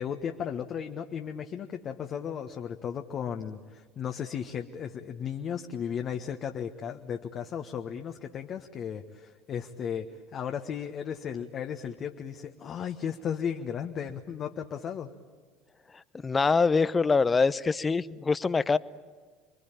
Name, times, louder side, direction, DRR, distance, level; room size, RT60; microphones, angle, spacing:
voice 1, 0.0-15.1, left 8 dB, 45° left, 4 dB, 1.4 m, -35 dB
voice 2, 15.9-18.8, left 4 dB, 25° left, 17 dB, 0.8 m, -24 dB
28.5 x 23.0 x 9.0 m, 1.5 s
figure-of-eight pair, 65°, 0 cm